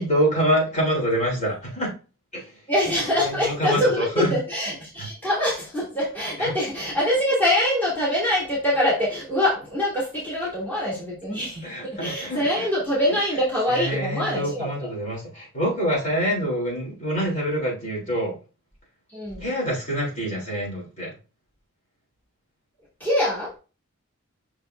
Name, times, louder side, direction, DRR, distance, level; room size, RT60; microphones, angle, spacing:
voice 1, 0.0-1.9 2.3-2.4 3.2-4.3 5.0-5.1 6.4-6.5 11.6-12.7 13.7-18.3 19.4-21.1, equal, 35° left, -3 dB, 3.4 m, -26 dB
voice 2, 2.7-14.9 19.1-19.5 23.0-23.5, left 1 dB, 10° left, -7 dB, 2.6 m, -24 dB
6.3 x 5.8 x 2.6 m, 0.33 s
head